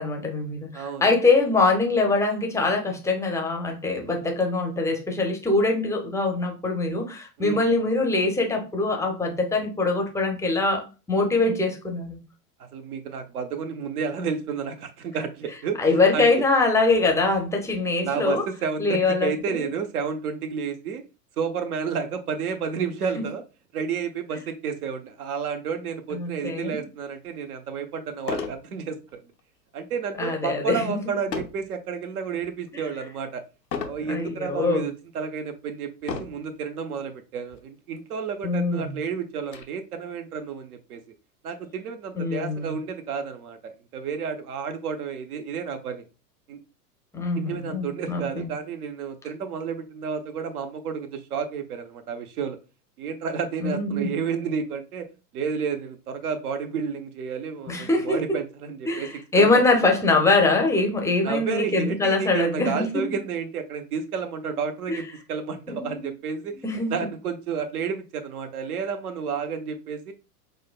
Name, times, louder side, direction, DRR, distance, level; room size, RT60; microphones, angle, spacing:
voice 1, 0.0-12.2 15.8-18.4 18.8-19.7 23.2-23.3 26.1-26.8 30.2-31.0 32.7-32.8 34.1-34.8 38.4-39.0 42.1-42.8 47.1-48.5 53.6-54.2 57.7-58.2 58.9-62.9 64.9-65.0 65.7-66.1 66.6-66.9, left 3 dB, 5° left, 0.6 m, -23 dB
voice 2, 0.7-1.0 7.4-7.6 12.6-15.8 16.1-16.3 18.0-21.0 21.4-23.4 23.7-29.2 29.7-33.4 33.8-41.0 41.4-46.0 46.5-46.6 47.4-52.6 53.0-55.1 55.3-59.1 59.4-59.6 61.2-66.6 66.9-70.1, right 6 dB, 65° right, 0.8 m, -31 dB
sound 1, 27.3-27.4 28.2-28.6 29.1-29.4 31.3-31.7 32.3-32.7 33.7-34.1 34.8-34.9 36.0-36.5 37.5-37.6 38.0-38.1 38.5-39.6, left 5 dB, 90° left, 0.7 m, -33 dB
6.1 x 2.2 x 2.2 m
figure-of-eight pair, 90°, 49 cm